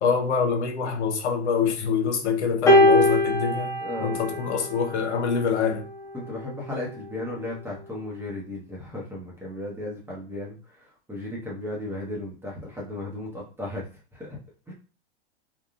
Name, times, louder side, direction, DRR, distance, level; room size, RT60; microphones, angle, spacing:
voice 1, 0.0-5.8, left 6 dB, 80° left, 0.8 m, -25 dB
sound 1, 2.7-5.1 6.2-6.3, left 1 dB, 10° left, 0.4 m, -21 dB
voice 2, 3.8-4.2 6.1-13.8 14.1-14.4 14.7-14.8, left 2 dB, 5° right, 0.8 m, -35 dB
3.5 x 2.3 x 2.4 m
hypercardioid pair, 120°, 33 cm